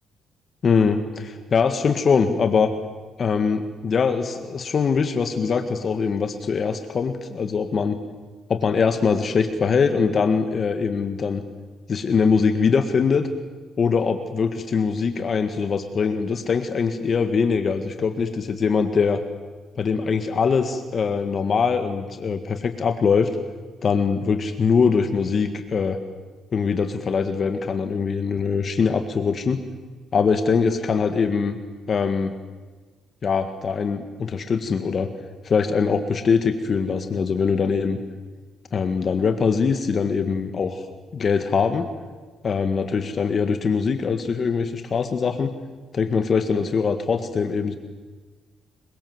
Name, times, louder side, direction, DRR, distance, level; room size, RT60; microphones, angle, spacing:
voice 1, 0.6-2.7 3.2-8.0 8.5-11.4 11.9-13.3 13.8-19.2 19.8-23.3 23.8-26.0 26.5-29.6 30.1-31.6 31.9-32.3 33.2-35.1 35.4-38.0 38.7-40.9 41.1-41.9 42.4-45.5 45.9-47.8, left 5 dB, 45° left, 8 dB, 1.8 m, -22 dB
27.0 x 23.0 x 8.0 m, 1.4 s
cardioid pair, 90°, 0 cm